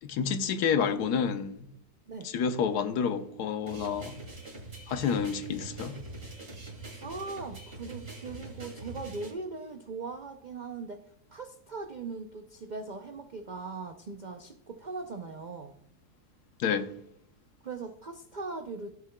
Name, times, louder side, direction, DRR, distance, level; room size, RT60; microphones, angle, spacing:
voice 1, 0.0-1.7 2.2-4.1 4.9-6.0 16.6-16.9, left 7 dB, 80° left, 1.3 m, -29 dB
sound 1, 3.7-9.3, right 2 dB, 35° right, 2.4 m, -44 dB
voice 2, 6.8-11.0 11.3-15.8 17.6-18.9, right 4 dB, 75° right, 0.4 m, -40 dB
15.0 x 8.3 x 2.3 m
omnidirectional pair, 1.7 m